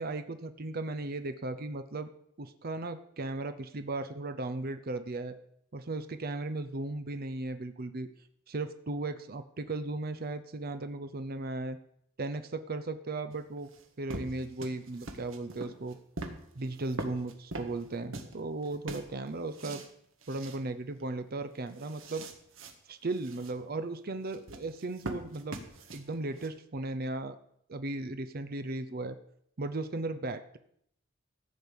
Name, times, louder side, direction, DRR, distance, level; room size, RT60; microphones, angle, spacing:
voice 1, 0.0-2.1 2.4-5.4 5.7-8.1 8.5-11.8 12.2-13.7 14.0-16.0 16.5-19.8 20.3-22.3 22.9-25.6 25.9-27.4 27.7-29.2 29.6-30.6, right 2 dB, 50° right, 10 dB, 0.7 m, -36 dB
sound 1, 13.3-18.4 18.6-19.9 20.2-20.6 21.0-21.1 21.4-22.7 23.1-23.5 24.3-26.5, right 2 dB, 80° right, 1.6 m, -43 dB
14.5 x 5.3 x 8.2 m, 0.69 s
head